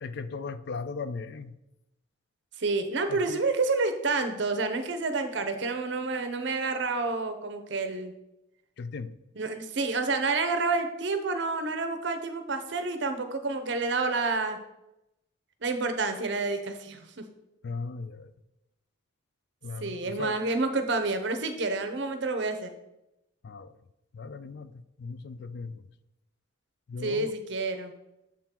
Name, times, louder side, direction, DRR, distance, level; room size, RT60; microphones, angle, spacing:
voice 1, 0.0-1.5 3.1-3.4 8.8-9.2 17.6-18.3 19.6-20.4 23.4-23.7 24.1-25.8 26.9-27.3, left 4 dB, 55° left, 13 dB, 0.3 m, -37 dB
voice 2, 2.6-8.1 9.4-14.6 15.6-17.2 19.8-22.7 27.0-27.9, right 3 dB, 60° right, 7 dB, 0.7 m, -29 dB
7.3 x 3.7 x 4.4 m, 0.91 s
head